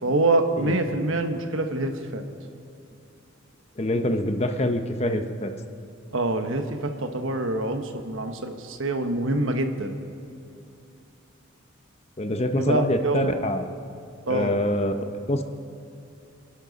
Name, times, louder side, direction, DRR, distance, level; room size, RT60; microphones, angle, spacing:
voice 1, 0.0-2.2 6.1-10.0 12.6-13.4 14.3-14.6, right 2 dB, 70° right, 6 dB, 1.1 m, -25 dB
voice 2, 3.8-5.5 12.2-13.6 14.3-14.9 15.3-15.4, left 1 dB, 30° left, 7 dB, 0.8 m, -25 dB
27.0 x 11.5 x 4.0 m, 2.6 s
head